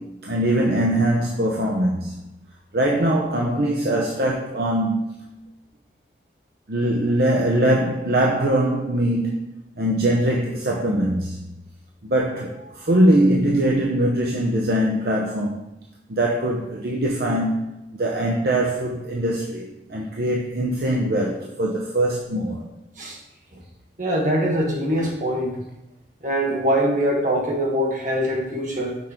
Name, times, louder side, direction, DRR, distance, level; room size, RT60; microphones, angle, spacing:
voice 1, 0.0-2.2 2.7-5.3 6.7-9.5 9.8-11.4 12.0-15.7 16.1-17.7 17.9-22.6, right 1 dB, 60° right, 0.7 m, -22 dB
voice 2, 24.0-25.5 26.2-29.0, equal, 45° right, 1.5 m, -23 dB
6.3 x 5.0 x 4.4 m
head